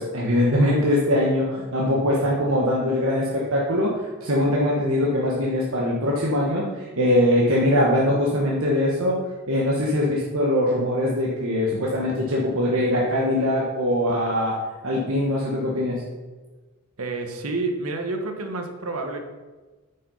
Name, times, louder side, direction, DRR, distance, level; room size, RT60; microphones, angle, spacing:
voice 1, 0.0-9.2 9.5-14.6 14.8-16.0, left 1 dB, 65° right, -3 dB, 1.4 m, -22 dB
voice 2, 17.0-19.2, right 3 dB, 85° right, 4 dB, 1.3 m, -29 dB
9.5 x 5.6 x 5.6 m, 1.3 s
head